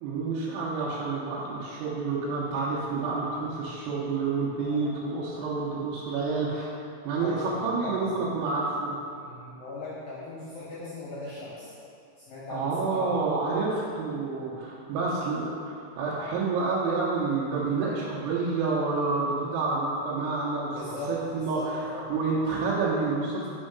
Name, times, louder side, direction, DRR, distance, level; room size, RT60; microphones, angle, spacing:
voice 1, 0.0-6.7 7.0-9.0 12.5-23.5, right 4 dB, 90° right, -6 dB, 3.1 m, -29 dB
voice 2, 4.6-4.9 7.2-8.1 9.1-11.7 12.2-13.2 20.7-22.1, left 2 dB, 75° left, -8 dB, 2.1 m, -38 dB
6.2 x 4.4 x 5.1 m, 2.4 s
omnidirectional pair, 5.5 m